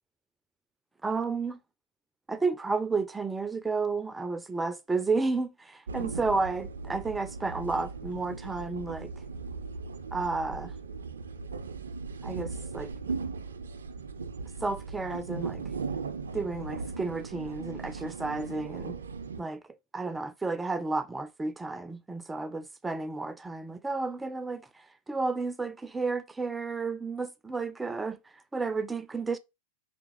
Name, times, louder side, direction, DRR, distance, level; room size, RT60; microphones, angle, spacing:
voice 1, 1.0-1.6 2.3-9.1 10.1-10.7 12.2-12.9 14.6-15.6 16.3-19.0 19.4-19.6 19.9-24.7 25.1-28.2 28.5-29.4, right 3 dB, 10° right, 0.4 m, -32 dB
sound 1, 5.9-19.4, right 4 dB, 70° right, 0.4 m, -38 dB
4.7 x 3.4 x 3.0 m
figure-of-eight pair, 90°, 0 cm